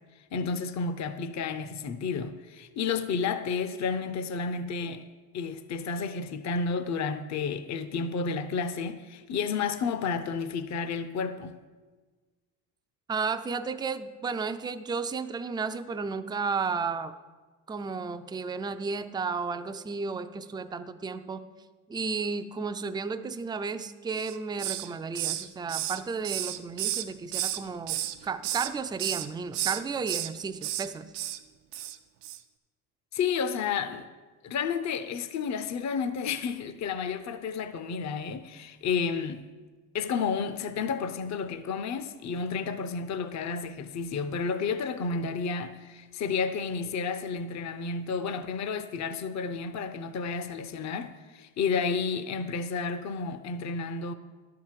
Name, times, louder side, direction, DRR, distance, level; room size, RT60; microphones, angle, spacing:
voice 1, 0.3-5.0 5.3-11.6 33.1-34.1 34.4-39.5 39.9-54.1, left 5 dB, 40° left, 0.7 m, -31 dB
voice 2, 13.1-17.1 17.7-21.5 21.9-31.1, right 5 dB, 10° right, 0.4 m, -33 dB
Hiss, 24.1-24.9 25.1-27.6 27.9-28.7 29.0-29.3 29.5-30.3 30.6-30.9 31.1-31.4 31.7-32.0 32.2-32.4, right 13 dB, 85° right, 0.7 m, -32 dB
11.0 x 4.7 x 7.4 m
supercardioid pair, 90°, 41 cm